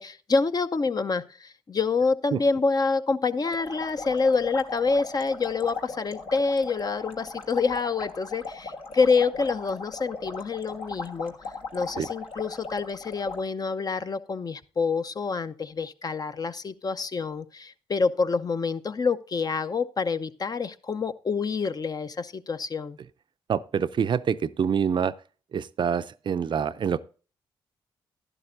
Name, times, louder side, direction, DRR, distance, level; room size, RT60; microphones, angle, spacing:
voice 1, 0.0-11.3 11.7-23.0, left 4 dB, 40° left, 0.6 m, -27 dB
sound 1, 3.4-13.4, left 3 dB, 70° left, 1.4 m, -38 dB
voice 2, 23.5-25.1 25.5-27.0, right 7 dB, 55° right, 0.5 m, -26 dB
11.0 x 11.0 x 2.6 m
supercardioid pair, 45°, 10 cm